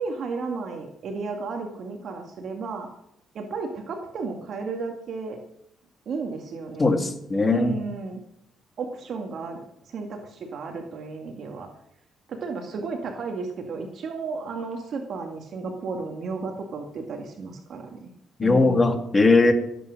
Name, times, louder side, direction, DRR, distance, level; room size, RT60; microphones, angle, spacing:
voice 1, 0.0-2.9 3.3-5.4 6.1-6.9 7.5-8.2 8.8-11.7 12.3-18.1 18.4-18.9, right 4 dB, 60° right, 4 dB, 2.0 m, -33 dB
voice 2, 6.8-7.8 18.4-19.5, left 3 dB, 25° left, 7 dB, 2.3 m, -19 dB
17.0 x 8.5 x 6.5 m, 0.78 s
cardioid pair, 90°, 0 cm